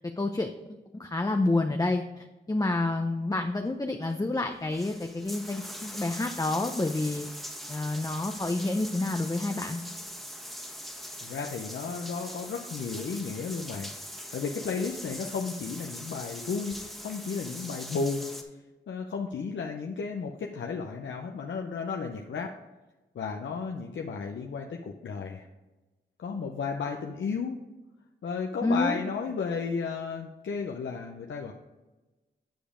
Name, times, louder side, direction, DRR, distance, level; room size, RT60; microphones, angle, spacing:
voice 1, 0.2-0.5 1.0-7.3 7.7-9.8 28.6-29.0, left 2 dB, 20° left, 4 dB, 0.6 m, -29 dB
sound 1, 4.1-4.2 4.5-18.4, equal, ahead, 1.4 m, -42 dB
voice 2, 11.2-13.9 14.3-18.3 18.9-22.5 23.1-25.5 26.2-27.6 28.2-31.5, left 5 dB, 80° left, 1 dB, 0.6 m, -33 dB
9.2 x 5.1 x 5.0 m, 1.1 s
cardioid pair, 45°, 19 cm